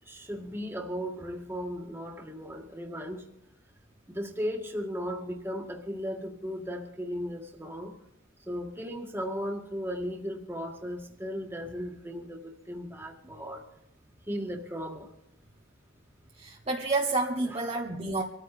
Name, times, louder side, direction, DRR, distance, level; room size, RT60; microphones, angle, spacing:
voice 1, 0.1-3.3 4.1-7.9 8.5-13.6 14.3-15.1 17.5-17.7, equal, 10° right, 2 dB, 1.8 m, -36 dB
voice 2, 16.4-18.2, right 2 dB, 30° right, 0 dB, 1.0 m, -29 dB
26.5 x 14.0 x 2.5 m, 0.84 s
head